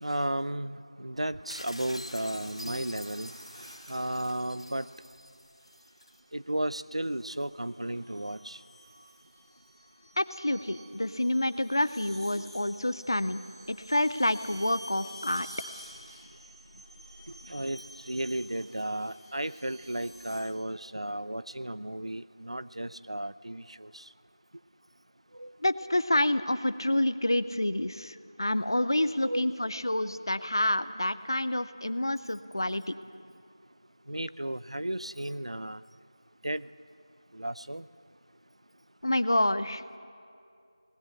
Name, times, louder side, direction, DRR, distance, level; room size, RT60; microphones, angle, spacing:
voice 1, 0.0-4.9 6.3-8.6 12.3-12.4 17.3-24.1 25.3-25.6 29.2-29.6 34.1-35.8 36.4-36.7 37.3-37.9, right 1 dB, 85° right, 16 dB, 0.6 m, -34 dB
sound 1, 1.5-6.2, equal, 85° left, 1.5 m, -46 dB
sound 2, 1.9-4.3 5.6-6.0 6.9-20.4, equal, 55° right, 6.4 m, -51 dB
voice 2, 10.2-13.4 13.7-15.5 25.6-32.9 39.0-39.8, left 1 dB, 45° left, 14 dB, 0.6 m, -28 dB
19.0 x 17.0 x 8.5 m, 2.4 s
figure-of-eight pair, 175°, 3 cm